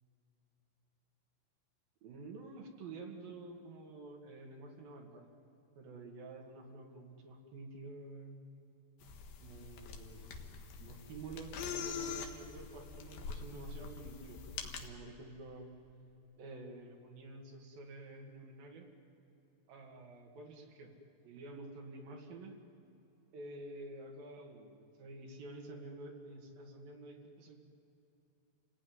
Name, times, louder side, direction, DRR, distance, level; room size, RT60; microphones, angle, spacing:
voice 1, 2.0-5.3 5.8-8.4 9.4-10.4 10.8-15.7 16.4-18.9 19.7-20.9 21.2-22.6 23.3-27.6, right 2 dB, 60° right, 1 dB, 3.7 m, -49 dB
sound 1, 9.0-14.9, left 6 dB, 65° left, 2.9 m, -44 dB
28.5 x 18.0 x 9.5 m, 3.0 s
omnidirectional pair, 4.8 m